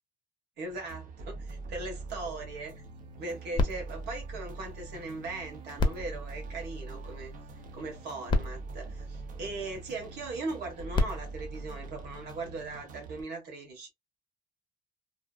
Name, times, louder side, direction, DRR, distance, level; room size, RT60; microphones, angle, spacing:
voice 1, 0.6-2.8 3.2-7.3 7.7-13.9, right 3 dB, 75° right, 1.3 m, -39 dB
sound 1, 0.7-13.2, right 3 dB, 50° right, 0.7 m, -43 dB
sound 2, 3.5-5.2 5.7-7.3 8.0-8.1 8.3-9.9 10.7-12.5 13.2-13.3, left 2 dB, 30° left, 0.6 m, -33 dB
2.7 x 2.0 x 2.3 m
cardioid pair, 110°, 17 cm